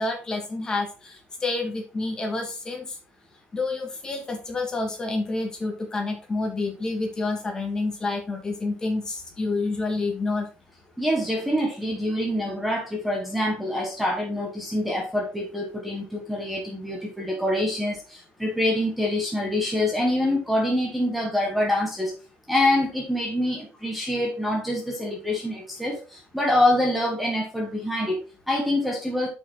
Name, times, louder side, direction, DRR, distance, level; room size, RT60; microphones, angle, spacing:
voice 1, 0.0-3.0 3.5-10.5, left 3 dB, 20° left, 1.8 m, -28 dB
voice 2, 11.0-22.2 22.5-29.3, left 1 dB, ahead, 1.4 m, -25 dB
7.1 x 5.9 x 3.9 m
cardioid pair, 175°, 4 cm